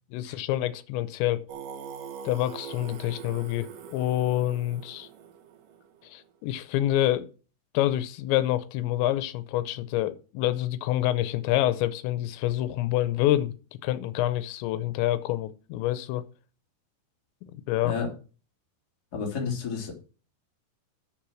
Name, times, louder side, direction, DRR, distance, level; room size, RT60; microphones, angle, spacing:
voice 1, 0.1-1.4 2.2-5.1 6.0-7.3 7.7-13.5 13.8-16.3 17.4-17.9, left 14 dB, 85° left, 2.9 m, -27 dB
Singing, 1.5-6.2, right 7 dB, 75° right, 2.0 m, -43 dB
voice 2, 19.1-19.9, left 5 dB, 25° left, 2.4 m, -31 dB
7.5 x 7.3 x 6.2 m
omnidirectional pair, 5.1 m